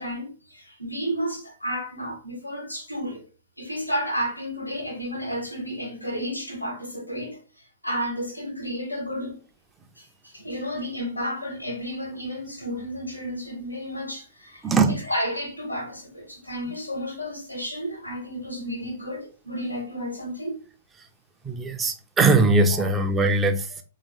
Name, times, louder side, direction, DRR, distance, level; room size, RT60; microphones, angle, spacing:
voice 1, 0.0-3.2 3.6-9.4 10.0-20.6 22.8-22.9, equal, 85° left, 1.3 m, -32 dB
voice 2, 14.6-15.0 21.4-23.8, right 3 dB, 15° right, 0.5 m, -21 dB
3.6 x 2.9 x 4.0 m
figure-of-eight pair, 110°, 0 cm